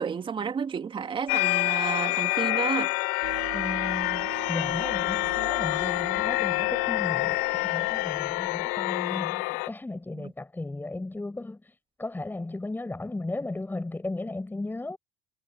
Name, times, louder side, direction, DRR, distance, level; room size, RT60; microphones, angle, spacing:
voice 1, 0.0-2.9 10.1-10.3, right 6 dB, 35° right, 2.1 m, -31 dB
sound 1, 1.3-9.7, left 25 dB, 75° left, 0.6 m, -27 dB
sound 2, 3.2-9.1, right 20 dB, 75° right, 2.1 m, -43 dB
voice 2, 3.5-11.6 12.0-15.0, left 2 dB, 10° left, 7.3 m, -35 dB
supercardioid pair, 90°, 15 cm